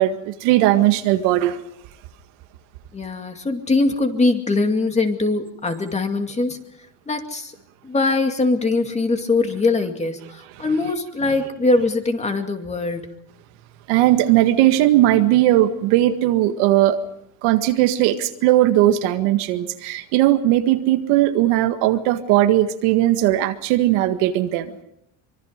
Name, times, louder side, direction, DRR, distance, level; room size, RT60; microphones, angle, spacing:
voice 1, 0.0-1.6 13.9-17.0 17.4-24.8, right 14 dB, 90° right, 7 dB, 1.9 m, -18 dB
voice 2, 2.9-6.6 7.1-7.5 7.8-13.1, left 3 dB, 15° left, 5 dB, 2.4 m, -22 dB
25.0 x 23.5 x 5.2 m, 0.78 s
cardioid pair, 130°, 39 cm